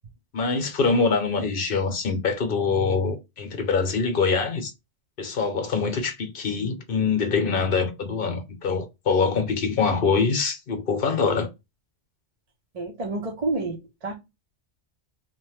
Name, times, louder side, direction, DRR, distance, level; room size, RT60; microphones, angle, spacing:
voice 1, 0.3-4.7 5.2-11.5, left 5 dB, 55° left, 0.9 m, -24 dB
voice 2, 12.7-14.2, right 2 dB, 35° right, 0.8 m, -29 dB
3.0 x 2.1 x 3.1 m
omnidirectional pair, 1.2 m